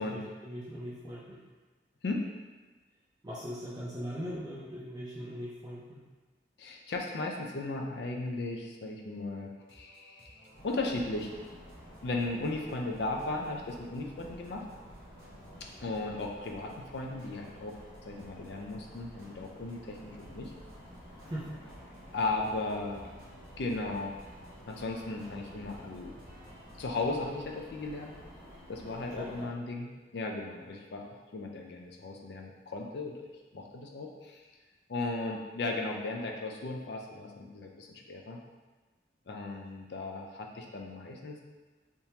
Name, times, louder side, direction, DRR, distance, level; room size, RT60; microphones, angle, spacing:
voice 1, 0.0-1.4 3.2-6.0 21.2-21.6 29.1-29.5, equal, 20° right, -8 dB, 0.5 m, -40 dB
voice 2, 6.6-11.3 12.0-14.6 15.6-17.8 18.1-20.5 22.1-23.1 23.6-24.1 24.7-26.2 26.8-28.1 28.7-34.5 34.9-38.4 39.3-41.4, left 2 dB, 75° left, 1 dB, 0.5 m, -36 dB
sound 1, 9.5-27.0, equal, 60° right, 0.9 m, -58 dB
sound 2, 10.5-29.5, equal, 30° left, 1.1 m, -51 dB
3.5 x 2.9 x 2.8 m, 1.3 s
head